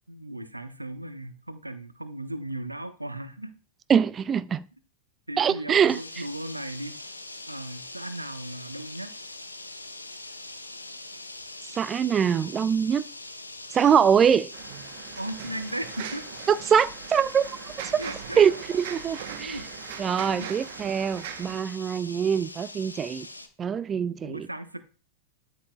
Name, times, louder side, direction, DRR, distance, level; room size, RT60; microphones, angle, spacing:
voice 1, 0.1-3.5 5.3-7.0 7.5-9.1 13.9-14.2 15.2-16.3 18.0-18.4 19.4-19.7 20.2-20.5 24.2-24.8, right 1 dB, 85° right, 0.8 m, -37 dB
voice 2, 3.9-4.6 5.4-6.0 11.8-13.0 13.7-14.5 16.5-17.5 18.4-19.6 20.0-23.3 23.6-24.5, right 7 dB, 25° right, 0.4 m, -23 dB
sound 1, 5.9-23.5, left 2 dB, 85° left, 0.9 m, -43 dB
sound 2, 14.5-21.6, right 10 dB, 50° right, 1.0 m, -41 dB
12.0 x 7.4 x 2.4 m
figure-of-eight pair, 90°, 0 cm